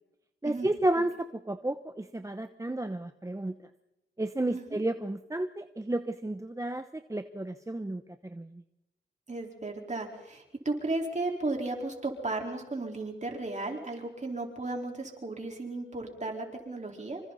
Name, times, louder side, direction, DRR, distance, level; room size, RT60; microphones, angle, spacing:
voice 1, 0.4-3.6 4.2-8.6, right 1 dB, 15° right, 9 dB, 0.9 m, -32 dB
voice 2, 9.3-17.2, right 2 dB, 40° right, 1 dB, 4.5 m, -34 dB
26.0 x 25.5 x 4.2 m, 0.91 s
wide cardioid pair, 80°, 19 cm